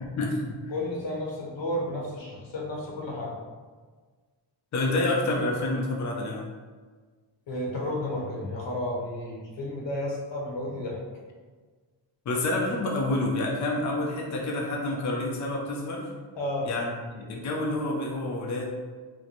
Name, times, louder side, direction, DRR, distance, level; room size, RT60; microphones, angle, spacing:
voice 1, 0.7-3.4 7.5-11.0 16.4-16.7, left 1 dB, 80° left, -2 dB, 0.9 m, -32 dB
voice 2, 4.7-6.5 12.3-16.1 16.7-18.7, left 2 dB, 40° left, -1 dB, 0.5 m, -28 dB
3.0 x 2.1 x 4.0 m, 1.4 s
wide cardioid pair, 150°, 44 cm